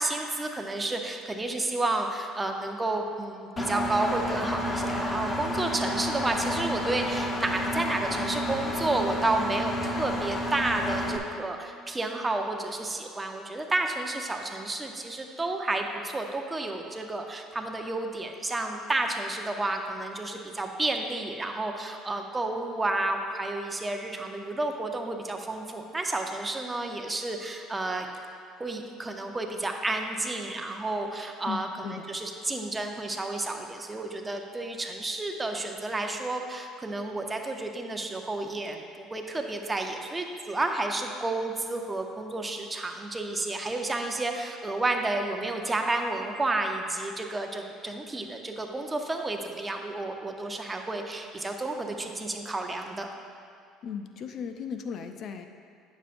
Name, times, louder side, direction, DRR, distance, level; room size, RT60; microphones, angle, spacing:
voice 1, 0.0-28.1 28.6-31.7 32.1-53.1, right 2 dB, 20° right, 3 dB, 0.7 m, -31 dB
Engine, 3.6-11.2, left 1 dB, 30° left, 0.9 m, -30 dB
voice 2, 31.5-32.1 53.8-55.5, left 6 dB, 55° left, 7 dB, 0.4 m, -36 dB
9.6 x 7.1 x 2.6 m, 2.3 s
supercardioid pair, 90°, 0 cm